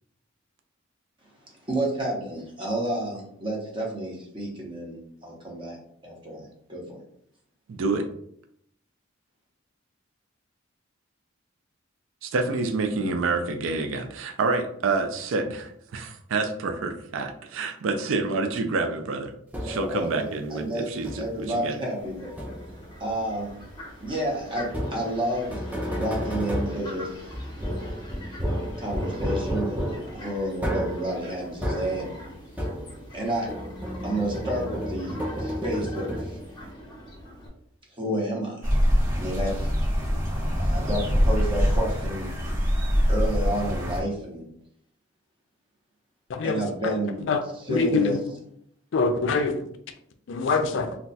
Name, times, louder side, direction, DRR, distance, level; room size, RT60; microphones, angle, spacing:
voice 1, 1.7-5.8 6.0-7.0 19.7-20.9 21.2-22.3 23.0-23.6 24.0-25.6 25.9-27.3 28.8-32.1 33.1-33.5 34.0-36.4 37.9-38.7 39.1-39.7 40.6-42.3 43.1-44.5 46.4-47.2 47.6-48.2, right 1 dB, 25° right, -2 dB, 0.8 m, -30 dB
voice 2, 7.7-8.0 12.2-19.3 19.6-21.8, right 3 dB, 75° right, 6 dB, 0.4 m, -28 dB
sound 1, 19.5-20.0 21.0-21.5 22.4-22.9 24.7-33.2 33.5-36.6, equal, 10° right, 0.4 m, -32 dB
Fowl, 22.0-37.5, equal, 20° left, 0.7 m, -44 dB
sound 2, 38.6-44.0, equal, 40° right, 1.2 m, -24 dB
voice 3, 46.3-46.9 47.3-47.4 47.7-48.2 48.9-49.6 50.3-51.0, left 4 dB, 65° left, 8 dB, 0.4 m, -24 dB
2.3 x 2.2 x 3.9 m, 0.69 s
head